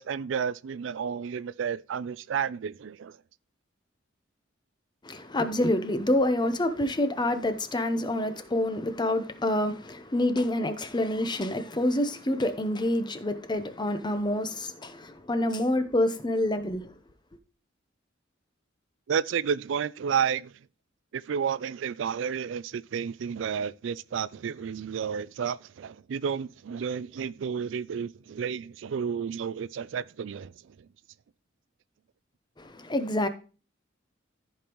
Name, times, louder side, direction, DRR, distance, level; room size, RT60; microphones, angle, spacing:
voice 1, 0.0-3.1 19.1-20.5 21.1-30.5, right 7 dB, 75° right, 0.4 m, -31 dB
voice 2, 5.0-16.9 32.6-33.3, left 1 dB, 25° left, 0.8 m, -27 dB
14.0 x 5.3 x 3.0 m
head